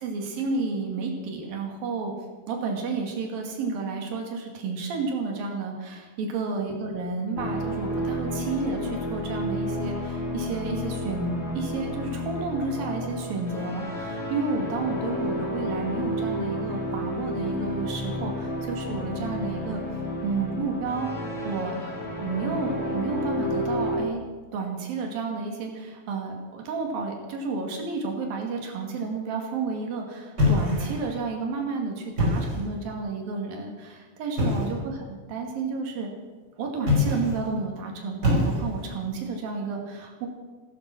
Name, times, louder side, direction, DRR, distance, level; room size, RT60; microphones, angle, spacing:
voice 1, 0.0-2.1 2.5-19.8 20.2-21.1 21.4-21.9 22.2-24.2 24.5-36.1 36.6-40.3, right 4 dB, 80° right, 2 dB, 4.1 m, -31 dB
sound 1, 7.4-24.1, left 1 dB, 25° left, 1.8 m, -31 dB
sound 2, 30.4-31.2 32.0-32.7 34.4-34.8 36.8-37.5 38.2-38.9, left 2 dB, 25° right, 5.3 m, -24 dB
15.5 x 14.0 x 6.0 m, 1.4 s
omnidirectional pair, 4.1 m